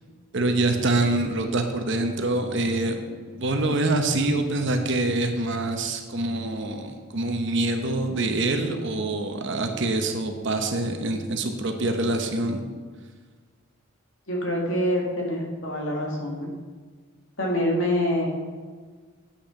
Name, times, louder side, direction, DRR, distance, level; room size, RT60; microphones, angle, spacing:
voice 1, 0.3-3.0 3.3-12.6, right 2 dB, 55° right, 5 dB, 1.0 m, -25 dB
voice 2, 14.3-16.5 17.4-18.3, equal, 60° left, -2 dB, 2.2 m, -25 dB
8.4 x 6.3 x 5.8 m, 1.5 s
head